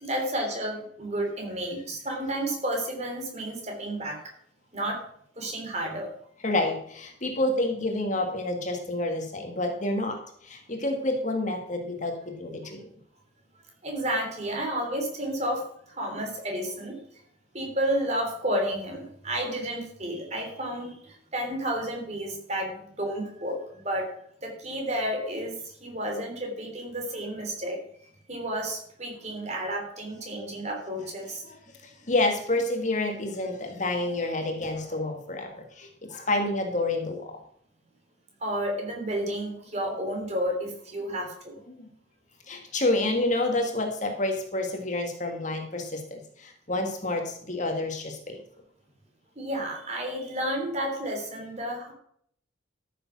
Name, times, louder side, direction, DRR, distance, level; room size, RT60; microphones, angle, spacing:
voice 1, 0.0-4.2 4.7-5.0 5.4-6.1 13.8-17.0 17.5-24.1 24.4-27.8 28.3-31.4 38.4-41.6 49.4-51.9, right 1 dB, 35° right, 2 dB, 3.4 m, -31 dB
voice 2, 6.4-12.9 31.4-31.6 31.8-37.4 41.7-41.9 42.5-48.4, left 2 dB, 35° left, 4 dB, 1.8 m, -29 dB
13.5 x 6.9 x 6.1 m, 0.66 s
head